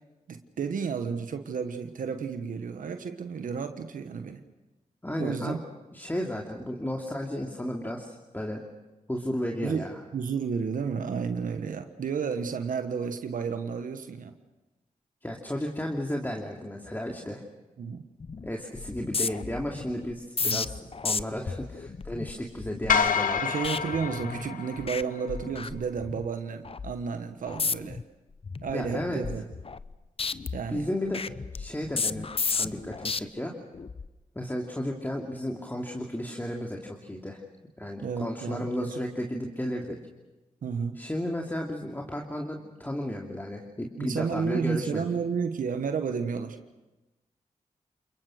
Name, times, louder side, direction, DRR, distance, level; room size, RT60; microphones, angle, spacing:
voice 1, 0.3-4.4 5.2-5.6 9.6-9.9 10.1-14.3 17.8-18.0 20.4-20.7 23.4-28.0 28.6-29.4 30.5-30.9 38.0-39.0 40.6-41.0 44.0-46.6, right 6 dB, 80° right, 7 dB, 1.3 m, -32 dB
voice 2, 5.0-5.6 5.9-8.6 9.1-10.0 15.2-17.4 18.4-23.5 28.7-29.2 30.7-31.2 31.5-33.5 34.3-37.4 37.8-40.0 40.9-45.1, left 1 dB, 15° left, 1 dB, 2.8 m, -33 dB
sound 1, 18.2-18.5 18.8-24.5 24.8-25.0 25.3-26.3 26.7-26.9 27.5-28.0 28.4-29.9 30.2-33.2 33.7-34.1, left 4 dB, 45° left, 0.8 m, -33 dB
sound 2, 22.9-25.3, left 6 dB, 85° left, 1.1 m, -28 dB
29.0 x 21.5 x 6.5 m, 1.1 s
cardioid pair, 45°, 14 cm